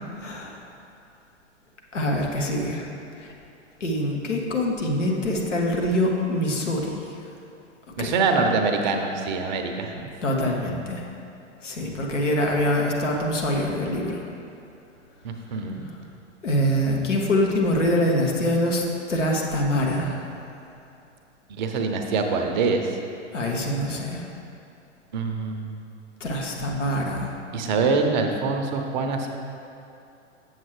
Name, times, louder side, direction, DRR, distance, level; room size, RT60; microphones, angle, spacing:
voice 1, 0.2-0.6 1.9-2.9 3.2-3.3 3.8-7.0 8.0-8.1 10.2-11.0 11.6-14.2 16.4-20.2 23.3-24.3 26.2-27.3, left 1 dB, 75° left, 0 dB, 1.2 m, -24 dB
voice 2, 8.0-9.9 15.2-15.8 21.5-22.9 25.1-25.8 27.5-29.3, right 4 dB, 40° right, 4 dB, 0.6 m, -24 dB
7.6 x 7.3 x 3.2 m, 2.7 s
figure-of-eight pair, 100°, 37 cm